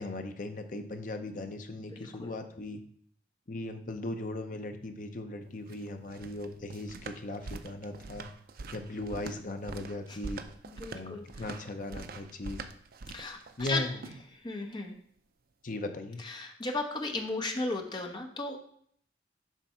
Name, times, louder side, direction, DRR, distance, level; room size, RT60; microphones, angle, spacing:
voice 1, 0.0-2.8 3.5-8.3 8.7-10.4 10.9-12.6 13.6-14.0 15.6-16.2, left 2 dB, 45° left, 6 dB, 0.7 m, -38 dB
voice 2, 1.9-2.4 10.1-10.2 10.6-11.4 13.1-13.8 14.3-14.9 16.2-18.6, left 2 dB, 25° left, 4 dB, 0.9 m, -35 dB
sound 1, 5.5-14.4, right 3 dB, 55° right, 0.5 m, -44 dB
7.2 x 3.4 x 5.6 m, 0.62 s
head